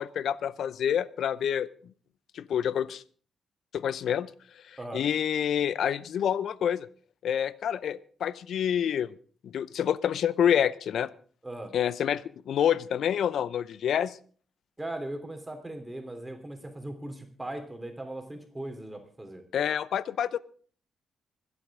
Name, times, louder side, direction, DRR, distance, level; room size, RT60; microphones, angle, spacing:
voice 1, 0.0-1.7 2.3-3.0 3.7-4.3 4.9-6.9 7.2-9.1 9.4-11.1 11.7-14.2 19.5-20.4, left 9 dB, 75° left, 19 dB, 0.6 m, -27 dB
voice 2, 11.4-11.7 14.8-19.4, right 1 dB, 15° right, 5 dB, 3.4 m, -39 dB
25.0 x 8.5 x 3.7 m, 0.43 s
supercardioid pair, 50°, 0 cm